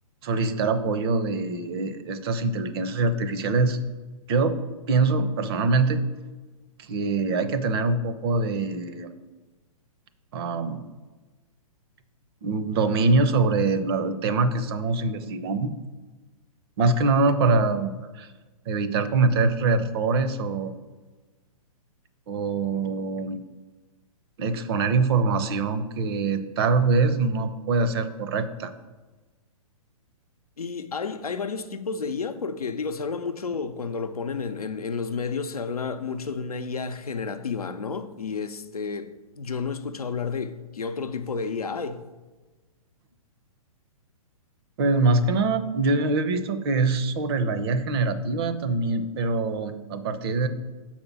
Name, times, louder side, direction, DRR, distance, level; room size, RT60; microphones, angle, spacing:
voice 1, 0.2-3.8 4.3-4.5 4.9-6.0 6.8-9.1 10.3-10.8 12.4-15.7 16.8-18.3 18.7-20.7 22.3-23.4 24.4-28.7 44.8-50.5, right 3 dB, 40° right, 0.6 m, -24 dB
voice 2, 30.6-42.0, left 5 dB, 80° left, 0.6 m, -31 dB
6.6 x 4.3 x 5.9 m
figure-of-eight pair, 120°, 19 cm